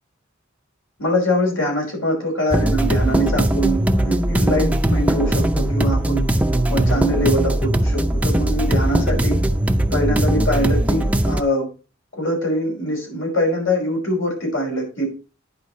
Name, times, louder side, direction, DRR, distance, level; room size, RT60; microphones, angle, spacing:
voice 1, 1.0-6.2 6.7-9.4 9.9-11.7 12.1-15.1, equal, 80° left, 0 dB, 5.1 m, -23 dB
sound 1, 2.5-11.4, right 1 dB, 5° right, 0.5 m, -19 dB
10.0 x 5.6 x 4.1 m, 0.34 s
head